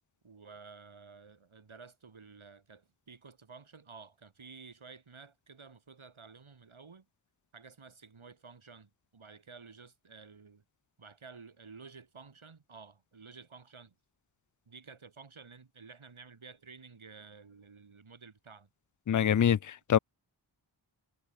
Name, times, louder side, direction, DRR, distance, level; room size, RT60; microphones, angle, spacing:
voice 1, 0.2-7.1 7.5-10.6 11.0-13.9 14.7-18.7, right 5 dB, 90° right, 4.6 m, -52 dB
voice 2, 19.1-20.0, left 9 dB, 40° left, 0.5 m, -25 dB
wide cardioid pair, 60°, 47 cm